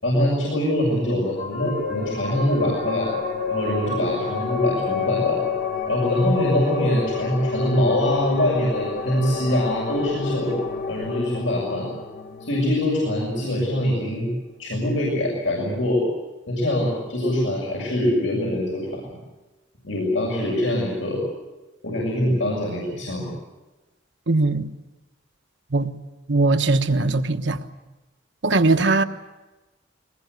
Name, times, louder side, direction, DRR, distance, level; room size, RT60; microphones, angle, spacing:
voice 1, 0.0-3.1 3.5-5.4 5.9-10.6 10.9-11.9 12.4-14.3 14.6-16.1 16.5-19.0 19.8-21.2 21.8-23.3, left 1 dB, 85° left, 6.9 m, -23 dB
sound 1, 1.3-14.2, left 5 dB, 50° left, 1.1 m, -29 dB
voice 2, 24.3-24.7 25.7-25.9 26.3-27.6 28.4-29.0, right 3 dB, 65° right, 1.2 m, -20 dB
23.0 x 20.5 x 8.2 m
head